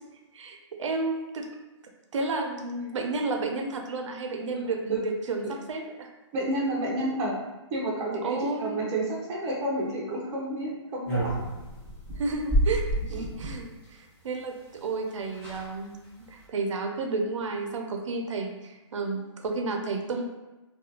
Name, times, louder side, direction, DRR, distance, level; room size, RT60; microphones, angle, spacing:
voice 1, 0.3-1.5 2.1-6.1 8.2-8.8 12.1-16.0 16.3-20.2, right 3 dB, 80° right, 3 dB, 0.4 m, -32 dB
voice 2, 6.3-7.4 7.7-11.4 13.1-13.2, right 1 dB, 20° right, -5 dB, 0.5 m, -30 dB
sound 1, 11.0-13.6 14.8-14.9 15.1-15.2 15.3-15.7 16.2-16.4, right 1 dB, 15° left, 1.3 m, -29 dB
2.4 x 2.2 x 2.7 m, 1.1 s
hypercardioid pair, 155°, 15 cm